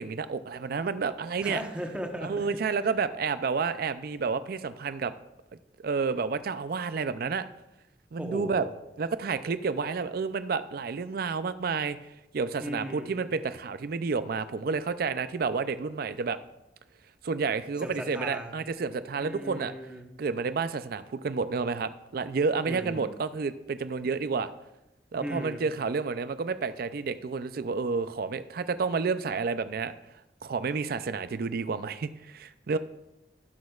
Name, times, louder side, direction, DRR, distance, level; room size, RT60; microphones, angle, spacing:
voice 1, 0.0-1.6 2.2-5.1 5.8-7.5 8.1-8.7 9.0-12.0 12.3-16.4 17.2-19.7 20.2-24.5 25.1-29.9 30.4-32.8, right 5 dB, 55° right, 13 dB, 0.4 m, -30 dB
voice 2, 1.4-2.5 8.2-8.7 12.6-13.2 17.8-18.5 19.2-20.1 22.7-23.1 25.2-25.7, equal, 5° right, 2 dB, 1.0 m, -37 dB
18.0 x 6.3 x 2.4 m, 0.92 s
head